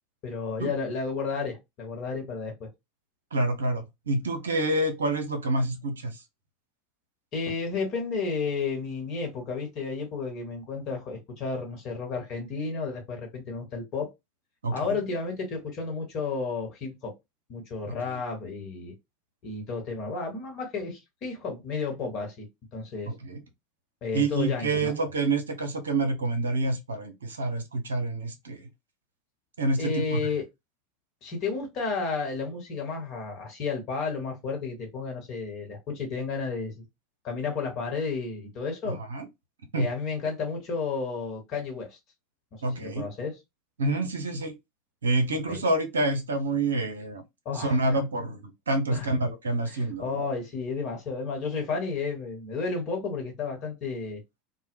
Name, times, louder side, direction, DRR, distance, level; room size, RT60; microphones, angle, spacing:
voice 1, 0.2-2.7 7.3-14.1 14.7-17.1 17.5-18.9 19.4-22.5 22.7-23.1 24.0-24.9 29.8-30.4 31.2-36.8 37.2-39.0 39.8-42.0 42.8-43.3 45.5-45.6 47.4-48.0 48.9-49.1 49.7-54.2, left 4 dB, 45° left, 1.0 m, -32 dB
voice 2, 3.3-6.2 14.6-15.0 17.9-18.2 23.1-23.4 24.1-28.7 29.6-30.2 38.9-39.3 39.7-39.9 42.6-43.1 43.8-44.5 45.0-47.2 47.5-50.2, right 2 dB, 75° right, 0.5 m, -28 dB
2.0 x 2.0 x 3.0 m
figure-of-eight pair, 75°, 0 cm